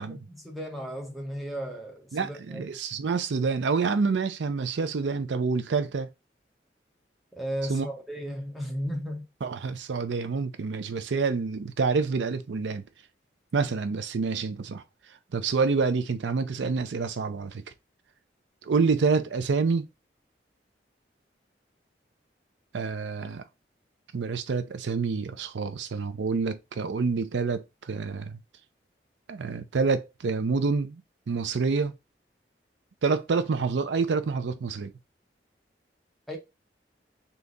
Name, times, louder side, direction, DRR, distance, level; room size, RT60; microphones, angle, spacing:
voice 1, 0.0-2.6 7.4-9.3 36.3-36.4, equal, ahead, 0.9 m, -35 dB
voice 2, 2.1-6.1 7.7-7.9 9.4-12.8 13.5-14.8 15.3-17.6 18.6-19.8 22.7-23.4 24.1-28.4 29.3-31.0 31.3-31.9 33.0-34.9, right 4 dB, 85° right, 0.5 m, -27 dB
3.5 x 2.9 x 3.8 m
head